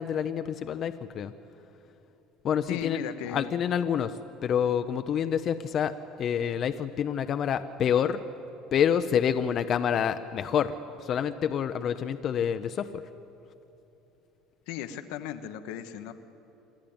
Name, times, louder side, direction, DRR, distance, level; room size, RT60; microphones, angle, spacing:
voice 1, 0.0-1.3 2.4-3.0 3.3-4.1 4.4-5.9 6.2-8.2 8.7-13.0, left 8 dB, 50° left, 9 dB, 0.7 m, -27 dB
voice 2, 2.7-3.5 14.7-16.1, left 10 dB, 75° left, 9 dB, 1.1 m, -36 dB
26.5 x 12.0 x 8.8 m, 2.9 s
supercardioid pair, 85°, 0 cm